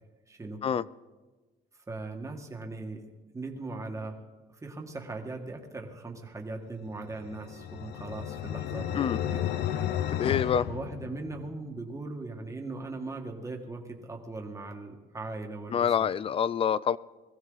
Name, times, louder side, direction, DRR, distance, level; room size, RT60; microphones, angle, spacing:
voice 1, 0.3-0.6 1.7-3.0 3.3-4.2 4.5-9.5 10.7-16.1, right 3 dB, 20° right, 2 dB, 2.1 m, -39 dB
sound 1, 7.1-11.7, left 11 dB, 80° left, 0.8 m, -33 dB
voice 2, 10.2-10.7 15.7-17.0, left 8 dB, 35° left, 21 dB, 0.4 m, -26 dB
21.5 x 15.0 x 4.1 m, 1.2 s
cardioid pair, 110°, 17 cm